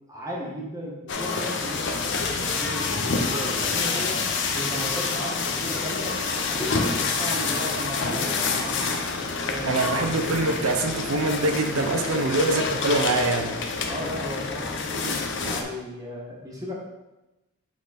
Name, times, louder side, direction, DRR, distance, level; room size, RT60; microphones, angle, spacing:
voice 1, 0.1-4.3 4.5-9.0 9.4-9.9 11.9-12.4 13.9-16.7, equal, 15° right, -4 dB, 1.5 m, -35 dB
sound 1, 1.1-15.6, left 4 dB, 55° left, 0.7 m, -27 dB
voice 2, 9.6-13.5, right 2 dB, 85° right, 4 dB, 0.7 m, -24 dB
8.4 x 3.9 x 4.2 m, 1.0 s
head